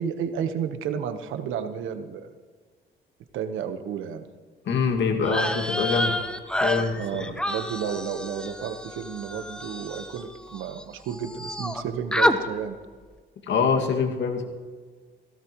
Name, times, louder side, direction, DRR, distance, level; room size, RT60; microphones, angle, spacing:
voice 1, 0.0-2.3 3.3-4.3 7.0-12.8, right 7 dB, 85° right, 9 dB, 1.2 m, -32 dB
voice 2, 4.7-6.2 6.6-7.0 13.5-14.4, left 5 dB, 65° left, 3 dB, 2.2 m, -24 dB
sound 1, 5.2-10.8 11.1-11.8 12.1-12.4, left 1 dB, 5° left, 1.0 m, -28 dB
17.5 x 17.0 x 3.1 m, 1.5 s
cardioid pair, 90°, 20 cm